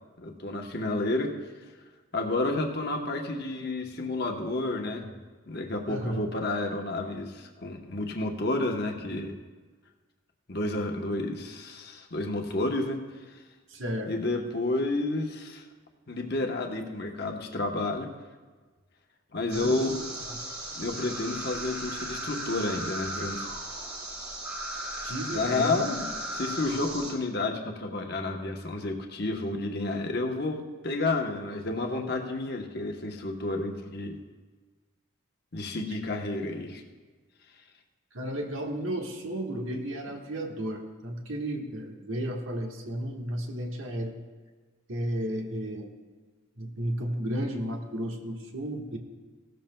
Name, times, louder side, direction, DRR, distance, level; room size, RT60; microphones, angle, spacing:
voice 1, 0.2-1.4 2.1-5.1 5.5-9.4 10.5-13.0 14.1-15.6 16.1-18.1 19.3-20.0 20.7-23.5 25.3-26.1 26.3-34.2 35.5-36.8, left 2 dB, 50° left, 2 dB, 1.0 m, -30 dB
voice 2, 5.9-6.2 13.7-14.1 19.5-20.0 20.3-20.4 25.0-25.8 38.1-44.1 44.9-45.9 46.6-49.0, right 1 dB, 75° right, 2 dB, 1.4 m, -33 dB
sound 1, 19.5-27.1, right 1 dB, 15° right, 2.5 m, -36 dB
17.0 x 13.0 x 2.2 m, 1.4 s
head